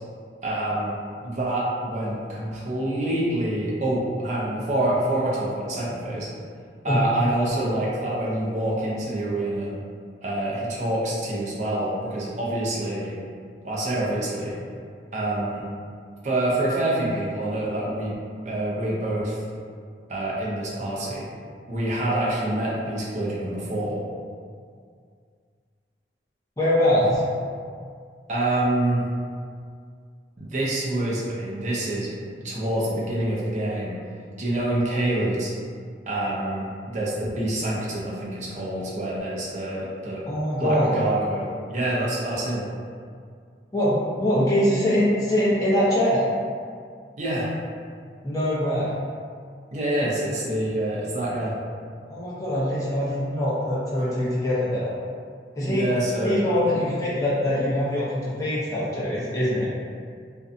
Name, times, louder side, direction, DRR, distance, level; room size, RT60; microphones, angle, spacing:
voice 1, 0.4-0.9 1.2-6.3 6.8-9.7 10.2-13.2 13.6-14.6 15.1-15.6 16.2-18.2 18.4-19.4 20.1-21.3 21.7-24.0 28.3-29.1 30.4-32.1 32.4-34.0 34.4-35.5 36.1-40.3 40.6-42.6 47.2-47.5 49.7-51.6 55.7-56.4, right 1 dB, 40° right, -6 dB, 0.5 m, -26 dB
voice 2, 26.6-27.2 40.3-40.9 43.7-46.3 48.2-49.0 52.1-54.9 55.6-55.8 56.2-59.7, left 1 dB, 20° left, -9 dB, 0.6 m, -23 dB
2.5 x 2.2 x 2.5 m, 2.1 s
head